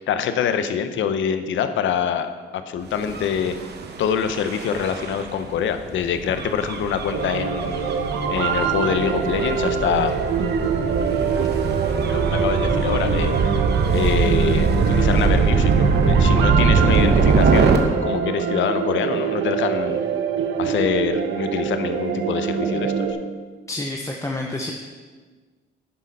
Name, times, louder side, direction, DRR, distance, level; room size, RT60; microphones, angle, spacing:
voice 1, 0.0-3.5 4.0-7.8 8.3-10.2 11.2-13.5 13.9-20.0 20.6-23.1, left 7 dB, 75° left, 9 dB, 0.8 m, -25 dB
Gull seagull / Waves surf / Siren, 3.0-17.8, right 5 dB, 55° right, 1.1 m, -22 dB
sound 1, 7.1-23.1, right 6 dB, 80° right, 1.1 m, -25 dB
voice 2, 23.7-24.7, left 2 dB, 15° left, 1 dB, 0.9 m, -28 dB
9.7 x 6.4 x 5.4 m, 1.4 s
cardioid pair, 90°, 20 cm